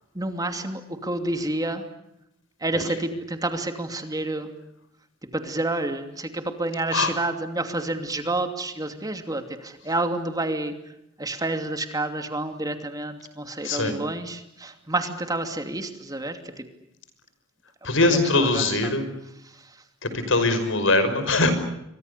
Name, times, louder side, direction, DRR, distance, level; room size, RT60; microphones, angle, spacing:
voice 1, 0.1-1.8 2.6-4.5 5.3-10.7 11.2-16.6 18.0-19.0 19.5-19.8, right 2 dB, 20° right, 7 dB, 2.7 m, -29 dB
voice 2, 17.8-19.1 20.0-21.5, left 2 dB, 75° left, 10 dB, 5.4 m, -22 dB
29.0 x 24.5 x 6.8 m, 0.84 s
head